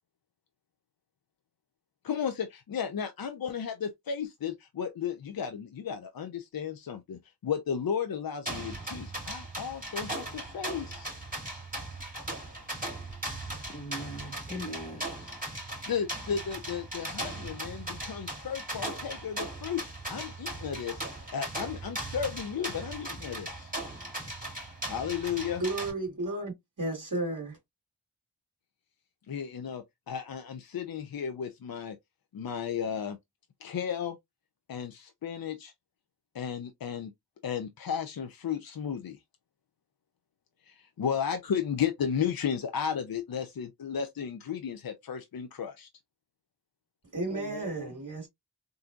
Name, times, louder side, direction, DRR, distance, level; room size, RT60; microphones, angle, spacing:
voice 1, 2.0-11.1 15.9-21.0 21.3-23.7 24.9-25.6 29.3-32.0 32.3-33.2 33.6-34.2 34.7-35.7 36.3-37.1 37.4-39.2 40.7-45.9, left 7 dB, 70° left, 0.6 m, -34 dB
sound 1, 8.5-25.9, right 1 dB, 20° right, 2.1 m, -38 dB
voice 2, 13.7-15.2 47.3-48.0, equal, 20° left, 1.3 m, -41 dB
voice 3, 25.6-27.6 47.1-48.3, right 2 dB, 55° right, 1.8 m, -33 dB
3.7 x 2.6 x 2.4 m
wide cardioid pair, 50°, 37 cm